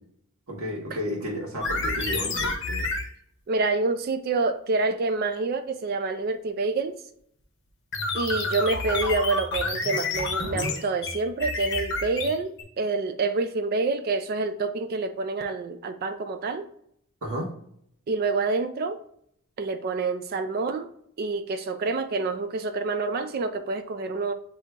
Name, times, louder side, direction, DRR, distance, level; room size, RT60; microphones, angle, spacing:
voice 1, 0.5-2.9 17.2-17.5, equal, 75° right, -1 dB, 1.3 m, -32 dB
sound 1, 1.6-3.1 7.9-12.6, left 3 dB, 55° left, 0.7 m, -29 dB
voice 2, 3.5-7.0 8.1-16.7 18.1-19.0 19.6-20.9 21.2-24.3, right 3 dB, 45° right, 9 dB, 0.3 m, -27 dB
7.9 x 2.7 x 2.3 m, 0.70 s
head